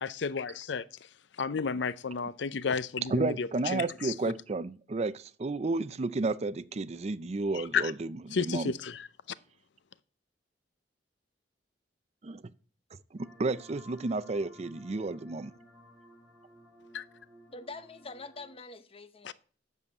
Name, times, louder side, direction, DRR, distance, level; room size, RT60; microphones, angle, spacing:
voice 1, 0.0-0.8 1.4-4.1 7.7-7.9 8.3-9.1 16.9-17.0 19.2-19.3, left 5 dB, 70° left, 0.5 m, -32 dB
voice 2, 3.1-8.1 8.4-8.7 12.2-12.4 13.1-15.5, right 3 dB, 35° right, 0.5 m, -32 dB
sound 1, 13.2-18.6, equal, 15° right, 3.9 m, -56 dB
voice 3, 17.5-19.3, left 3 dB, 30° left, 1.0 m, -45 dB
8.3 x 7.0 x 8.5 m
head